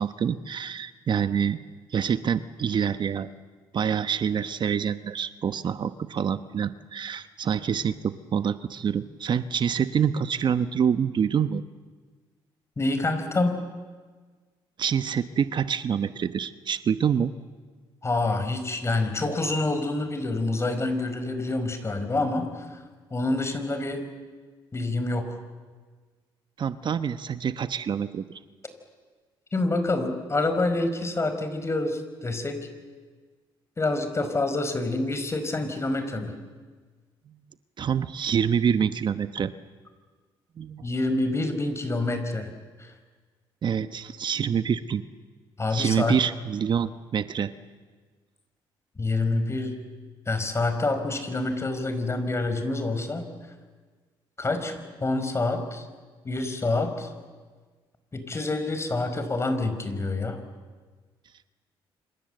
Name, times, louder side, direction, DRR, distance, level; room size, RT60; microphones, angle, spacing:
voice 1, 0.0-1.6 1.9-3.3 3.7-11.6 14.8-17.3 26.6-28.4 37.8-39.5 40.6-40.9 43.6-45.0 45.7-47.5, right 7 dB, 50° right, 12 dB, 1.0 m, -26 dB
voice 2, 12.8-13.6 18.0-22.8 23.1-24.0 24.7-25.4 29.5-32.7 33.8-36.4 40.8-42.5 42.8-42.9 45.6-46.2 49.0-49.8 50.3-53.3 54.4-55.8 56.2-57.1 58.1-60.4, left 2 dB, 30° left, 8 dB, 4.8 m, -27 dB
27.5 x 27.0 x 7.9 m, 1.5 s
cardioid pair, 75°, 10 cm